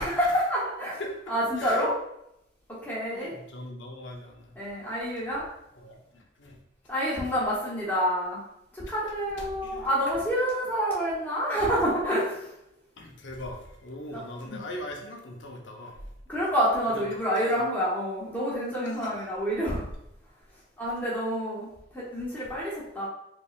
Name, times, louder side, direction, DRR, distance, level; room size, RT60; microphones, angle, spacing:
voice 1, 0.0-1.0 1.3-1.9 2.7-3.3 4.6-5.4 6.9-8.4 8.7-12.5 14.1-14.6 16.3-19.9 20.8-21.7 21.9-23.1, equal, 10° left, -7 dB, 1.1 m, -28 dB
voice 2, 1.6-1.9 3.1-4.6 5.8-6.0 6.4-6.6 9.4-9.9 13.0-16.1 16.9-17.1 17.4-17.6 18.8-19.1, left 1 dB, 75° left, 1 dB, 0.7 m, -40 dB
3.5 x 3.1 x 2.4 m, 0.81 s
head